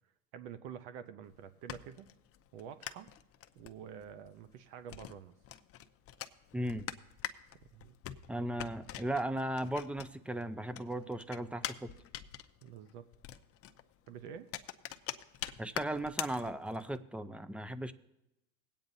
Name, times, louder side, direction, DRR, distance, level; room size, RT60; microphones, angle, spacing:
voice 1, 0.3-2.1 2.5-3.1 3.6-5.3 7.7-7.9 12.6-13.1 14.1-14.5, right 8 dB, 75° right, 11 dB, 0.8 m, -48 dB
sound 1, 1.2-10.4 10.7-17.0, left 12 dB, 40° left, 0.6 m, -45 dB
voice 2, 6.5-6.9 8.3-11.9 15.6-17.9, right 1 dB, 5° right, 13 dB, 0.4 m, -36 dB
20.5 x 8.7 x 2.7 m, 0.87 s
supercardioid pair, 110°, 37 cm